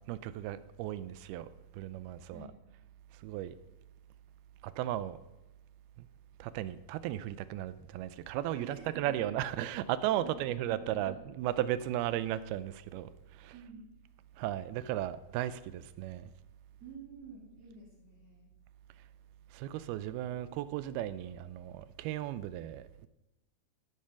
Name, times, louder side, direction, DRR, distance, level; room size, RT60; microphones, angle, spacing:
voice 1, 0.1-2.5 3.1-3.6 4.6-5.2 6.0-6.1 6.4-13.7 14.4-16.3 19.0-19.1 19.5-23.1, right 12 dB, 80° right, 2.5 m, -36 dB
voice 2, 8.5-9.3 10.2-11.1 13.5-13.9 16.8-18.5, right 4 dB, 40° right, 3.3 m, -49 dB
13.5 x 11.0 x 5.8 m
omnidirectional pair, 4.5 m